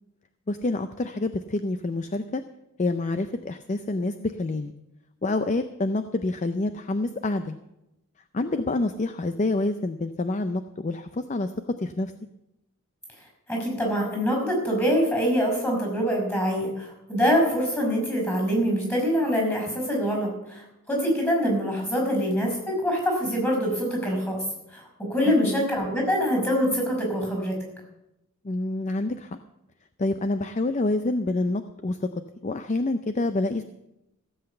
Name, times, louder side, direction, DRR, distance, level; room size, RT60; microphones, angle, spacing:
voice 1, 0.5-2.4 2.8-4.7 5.2-7.6 8.3-11.5 11.8-12.1 25.3-25.6 28.4-29.4 30.0-32.0 32.4-33.6, left 2 dB, 35° left, 9 dB, 0.5 m, -27 dB
voice 2, 13.5-24.4 24.7-24.8 25.1-27.6, equal, 10° left, 1 dB, 5.3 m, -24 dB
15.5 x 7.9 x 6.9 m, 0.90 s
head